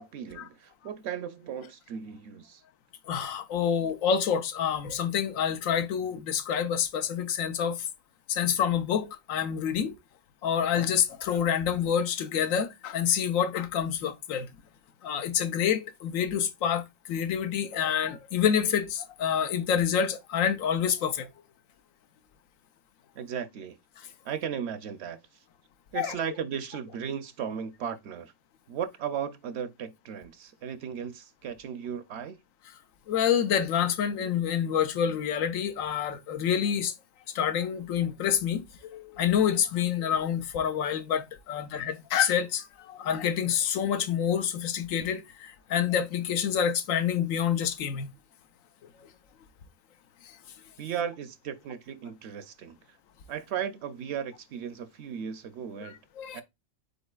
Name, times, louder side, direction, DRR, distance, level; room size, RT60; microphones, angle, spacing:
voice 1, 0.0-2.6 23.1-23.8 24.2-25.4 25.9-28.3 28.7-32.4 50.8-53.0 53.3-56.0 56.3-56.4, right 8 dB, 65° right, 0.7 m, -36 dB
voice 2, 3.1-7.8 8.3-9.9 10.4-14.5 15.0-21.3 26.0-26.1 33.1-36.9 37.3-48.1 50.2-50.4 55.8-56.4, left 8 dB, 90° left, 1.0 m, -27 dB
5.4 x 4.0 x 2.3 m
omnidirectional pair, 1.3 m